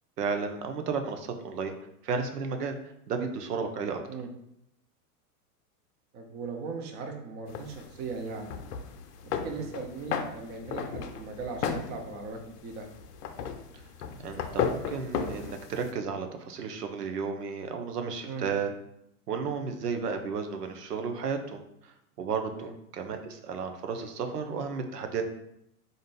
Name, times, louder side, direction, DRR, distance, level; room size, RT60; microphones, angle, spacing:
voice 1, 0.2-1.7 2.0-4.0 9.6-9.7 14.2-18.7 19.3-25.2, right 5 dB, 85° right, 6 dB, 0.7 m, -33 dB
voice 2, 6.1-8.5 9.2-12.9 18.3-18.5 22.5-22.7, right 4 dB, 25° right, 4 dB, 0.4 m, -38 dB
sound 1, 7.5-15.9, left 6 dB, 80° left, 0.6 m, -35 dB
4.0 x 2.5 x 3.7 m, 0.77 s
hypercardioid pair, 110°, 46 cm